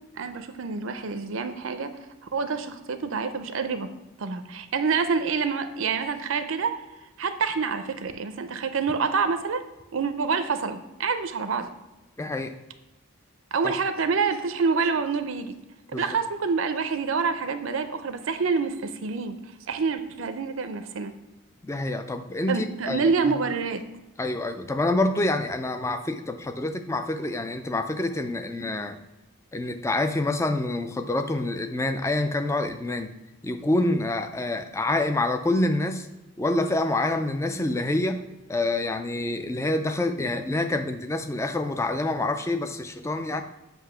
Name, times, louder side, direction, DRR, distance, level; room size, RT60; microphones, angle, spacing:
voice 1, 0.2-1.9 2.3-3.9 4.2-6.8 7.2-9.6 9.9-11.7 13.5-15.5 15.9-19.4 19.7-21.1 22.5-23.8, right 5 dB, 70° right, 9 dB, 0.5 m, -27 dB
voice 2, 12.2-12.5 13.6-13.7 15.9-16.2 21.6-23.4 24.2-29.0 29.5-33.1 33.4-36.1 36.4-38.2 38.5-43.4, left 2 dB, 15° left, 7 dB, 0.4 m, -27 dB
7.9 x 2.7 x 5.6 m, 1.0 s
head